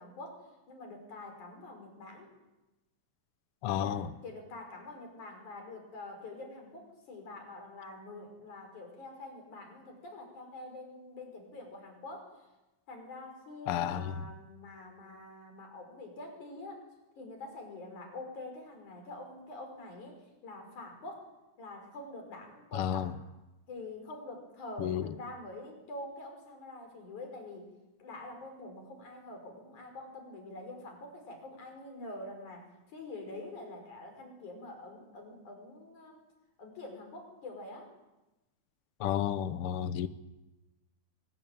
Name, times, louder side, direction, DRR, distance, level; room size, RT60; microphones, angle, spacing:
voice 1, 0.0-2.3 3.7-12.5 12.9-16.9 17.2-20.2 20.4-21.3 21.6-23.1 23.7-27.6 28.0-36.2 36.6-37.9, left 2 dB, 80° left, 4 dB, 6.7 m, -46 dB
voice 2, 3.6-4.1 13.7-14.2 22.7-23.1 24.8-25.1 39.0-40.1, left 10 dB, 65° left, 12 dB, 1.5 m, -32 dB
24.0 x 19.5 x 9.1 m, 1.0 s
omnidirectional pair, 3.4 m